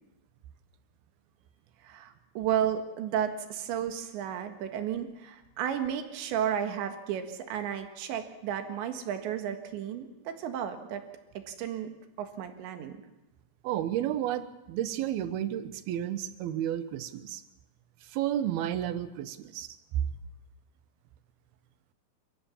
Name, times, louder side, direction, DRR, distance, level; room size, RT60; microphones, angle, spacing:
voice 1, 1.8-11.0 11.4-11.9 12.2-13.0, right 9 dB, 90° right, 6 dB, 4.0 m, -33 dB
voice 2, 13.6-17.4 18.0-19.7 19.9-20.0, right 11 dB, 70° right, 11 dB, 2.8 m, -31 dB
28.5 x 15.0 x 7.2 m, 1.0 s
omnidirectional pair, 5.0 m